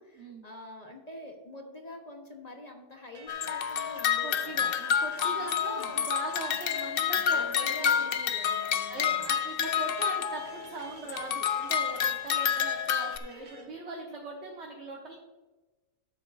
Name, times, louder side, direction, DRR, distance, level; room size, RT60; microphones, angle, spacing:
voice 1, 0.0-4.8 5.4-6.1 7.3-9.3, left 1 dB, 30° left, 1 dB, 1.1 m, -46 dB
sound 1, 3.1-13.7, right 3 dB, 70° right, 1.9 m, -52 dB
sound 2, 3.3-10.7 11.1-13.2, left 8 dB, 80° left, 0.5 m, -29 dB
voice 2, 4.2-8.0 8.9-15.2, right 3 dB, 50° right, -3 dB, 1.5 m, -40 dB
11.5 x 8.0 x 2.6 m, 1.2 s
omnidirectional pair, 1.6 m